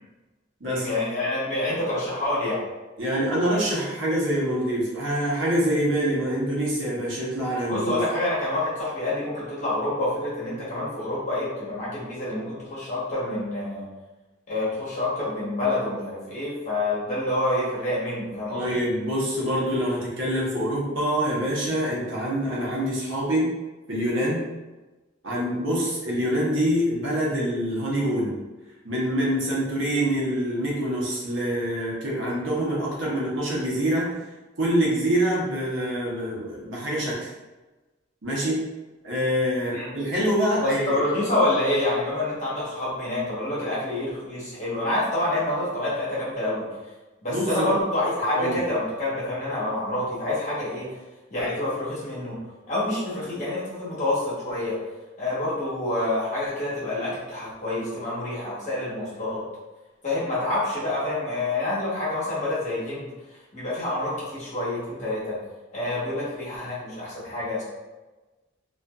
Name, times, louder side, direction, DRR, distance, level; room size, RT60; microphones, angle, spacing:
voice 1, 0.7-2.6 7.7-13.9 14.5-18.8 39.7-39.9 40.6-46.7 47.2-50.9 51.3-52.4 52.7-54.8 55.2-59.4 60.0-63.1 63.5-65.4 65.7-67.6, left 1 dB, 40° left, -8 dB, 1.0 m, -27 dB
voice 2, 3.0-8.0 18.5-23.5 23.9-24.4 25.2-28.4 28.8-34.1 34.6-37.3 38.2-38.6 39.0-41.0 47.2-47.7 48.3-48.6, equal, 65° right, -5 dB, 0.8 m, -25 dB
2.5 x 2.4 x 2.3 m, 1.2 s
head